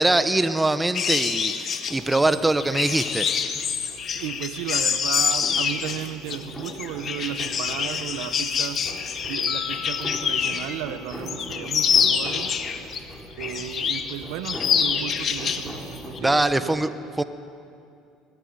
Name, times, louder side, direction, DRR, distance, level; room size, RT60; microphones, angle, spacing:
voice 1, 0.0-3.2 16.2-16.9 17.2-17.3, right 2 dB, 10° right, 11 dB, 1.1 m, -22 dB
sound 1, 0.9-10.8 11.1-13.0 13.4-14.1 14.4-15.7 16.0-16.2, left 7 dB, 40° left, 1.9 m, -26 dB
sound 2, 1.9-16.6, equal, 10° left, 5.7 m, -41 dB
voice 2, 4.1-8.8 9.2-12.5 13.4-16.8, right 12 dB, 80° right, 11 dB, 1.1 m, -34 dB
sound 3, 9.5-11.8, left 16 dB, 90° left, 2.0 m, -41 dB
23.0 x 19.5 x 9.5 m, 2.5 s
supercardioid pair, 110°, 0 cm